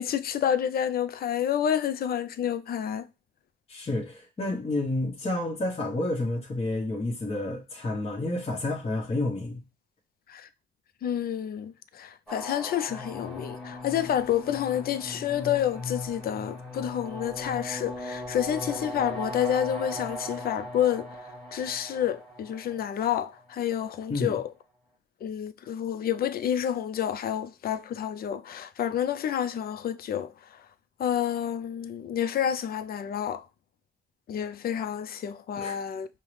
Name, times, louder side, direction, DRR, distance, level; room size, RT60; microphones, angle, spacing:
voice 1, 0.0-3.1 10.3-10.5 11.0-21.1 21.5-24.5 25.2-30.6 31.0-33.5 34.3-36.1, left 9 dB, 50° left, 0.4 m, -29 dB
voice 2, 3.7-9.6 24.1-24.3 35.6-35.8, left 2 dB, 30° left, 0.9 m, -30 dB
sound 1, 12.3-23.4, left 1 dB, 5° left, 1.3 m, -38 dB
5.4 x 2.0 x 3.1 m
cardioid pair, 90°, 20 cm